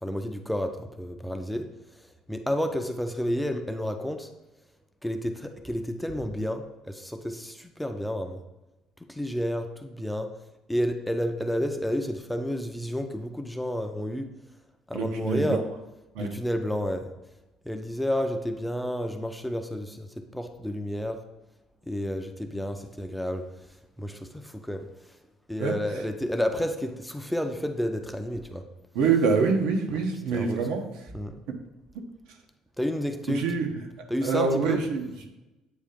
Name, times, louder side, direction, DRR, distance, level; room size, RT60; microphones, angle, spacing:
voice 1, 0.0-4.3 5.0-8.4 9.1-10.3 10.7-14.3 14.9-15.6 16.2-17.1 17.7-21.2 21.9-24.9 25.5-28.6 29.9-30.0 30.3-30.6 31.1-31.4 32.8-33.4 34.1-34.8, equal, ahead, 5 dB, 0.4 m, -31 dB
voice 2, 14.9-15.6 16.1-16.3 25.6-26.0 28.9-30.8 33.3-33.8 34.2-35.3, right 5 dB, 85° right, 4 dB, 1.0 m, -26 dB
8.2 x 2.8 x 5.0 m, 1.0 s
cardioid pair, 170°, 0 cm